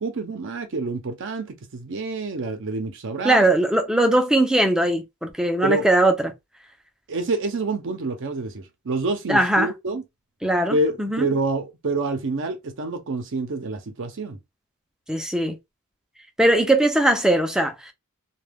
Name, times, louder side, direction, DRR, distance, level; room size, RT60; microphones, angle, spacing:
voice 1, 0.0-3.5 5.6-5.9 7.1-10.0 10.7-14.4, right 2 dB, 60° right, 0.6 m, -27 dB
voice 2, 3.2-6.3 9.3-9.7 10.4-11.3 15.1-15.6 16.4-17.9, right 1 dB, 5° right, 0.4 m, -20 dB
2.2 x 2.2 x 3.3 m
head